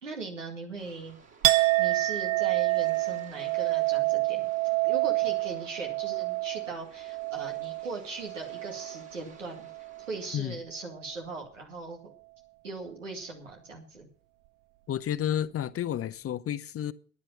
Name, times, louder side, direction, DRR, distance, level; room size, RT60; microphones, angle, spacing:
voice 1, 0.0-1.2 1.8-4.5 4.8-9.7 10.0-12.1 12.6-14.1, right 3 dB, 85° right, 2.3 m, -39 dB
sound 1, 0.8-10.4, right 5 dB, 45° right, 3.2 m, -55 dB
Chink clink, 1.4-9.1 9.5-10.1, right 21 dB, 60° right, 0.7 m, -28 dB
voice 2, 14.9-16.9, left 10 dB, 40° left, 0.8 m, -31 dB
12.5 x 10.5 x 5.7 m
figure-of-eight pair, 50°, 37 cm